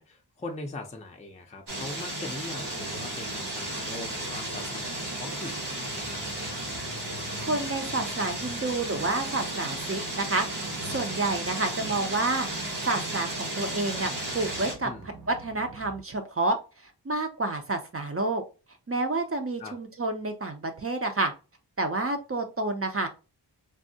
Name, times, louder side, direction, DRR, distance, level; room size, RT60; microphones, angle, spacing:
voice 1, 0.0-6.5 14.8-15.1 19.6-19.7, left 2 dB, 15° left, 2 dB, 0.5 m, -41 dB
sound 1, 1.7-14.7, right 1 dB, 80° right, 1.2 m, -34 dB
sound 2, 2.4-16.0, right 1 dB, 60° right, 0.9 m, -48 dB
voice 2, 7.4-12.5 12.9-14.9 15.3-16.6 16.8-18.4 18.9-21.3 21.8-23.1, right 2 dB, 35° right, 5 dB, 0.5 m, -29 dB
3.5 x 2.0 x 2.6 m, 0.30 s
wide cardioid pair, 55°, 41 cm